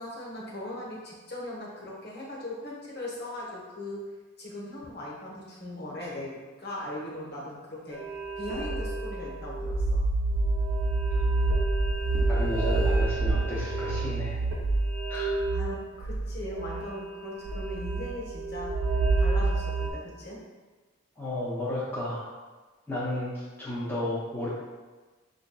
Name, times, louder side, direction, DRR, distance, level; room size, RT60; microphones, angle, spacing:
voice 1, 0.0-4.0 4.4-8.0 8.4-10.0 15.5-20.4, left 1 dB, 50° left, -5 dB, 1.0 m, -39 dB
sound 1, 7.9-19.9, right 2 dB, 70° right, 0.6 m, -28 dB
voice 2, 12.3-14.4 15.1-15.3 21.2-22.3 22.9-24.5, left 1 dB, 10° left, -9 dB, 0.5 m, -32 dB
5.4 x 2.6 x 2.2 m, 1.3 s
head